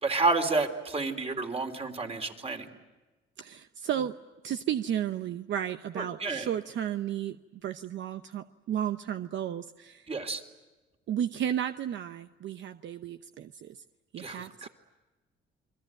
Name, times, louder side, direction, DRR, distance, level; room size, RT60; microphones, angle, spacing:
voice 1, 0.0-2.7 6.0-6.5 10.1-10.4 14.2-14.7, right 3 dB, 30° right, 5 dB, 3.5 m, -30 dB
voice 2, 3.4-4.1 4.4-10.1 11.1-13.8 14.1-14.7, right 10 dB, 70° right, 9 dB, 0.8 m, -33 dB
28.5 x 22.0 x 9.0 m, 1.2 s
cardioid pair, 90°, 20 cm